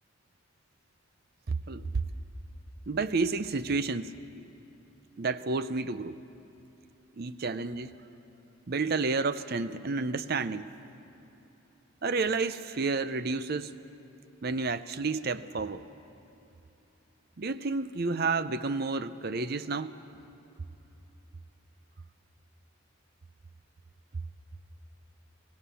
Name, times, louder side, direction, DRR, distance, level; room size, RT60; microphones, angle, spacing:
voice 1, 2.9-4.1 5.2-6.2 7.2-7.9 8.7-10.7 12.0-13.8 14.4-15.8 17.4-20.0, right 4 dB, 45° right, 13 dB, 0.6 m, -30 dB
27.5 x 17.0 x 7.0 m, 3.0 s
head